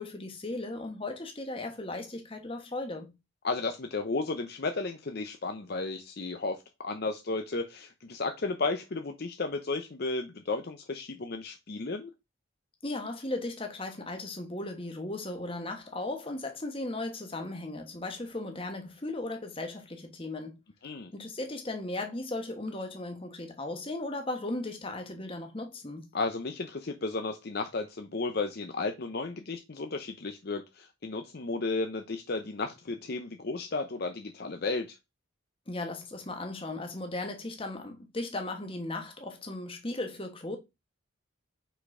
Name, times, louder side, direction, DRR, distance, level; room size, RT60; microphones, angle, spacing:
voice 1, 0.0-3.1 12.8-20.6 21.1-26.1 35.7-40.6, left 2 dB, 25° left, 1.2 m, -36 dB
voice 2, 3.4-12.1 20.8-21.1 26.1-34.9, left 3 dB, 50° left, 0.6 m, -33 dB
5.7 x 4.1 x 4.8 m
head